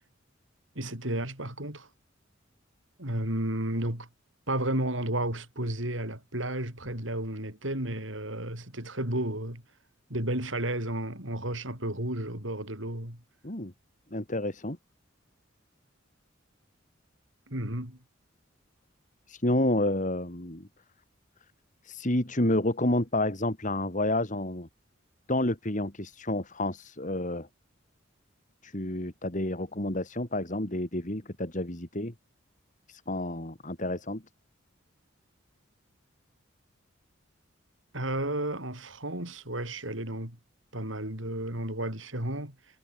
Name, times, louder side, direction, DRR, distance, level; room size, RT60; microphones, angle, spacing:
voice 1, 0.8-1.9 3.0-4.1 4.5-9.6 10.1-13.2 17.5-18.0 37.9-40.4 40.7-42.6, right 1 dB, 70° right, 7.5 m, -32 dB
voice 2, 14.1-14.8 19.3-20.7 21.8-24.7 25.3-27.5 28.6-32.1 32.9-34.2, left 1 dB, 40° left, 3.2 m, -29 dB
head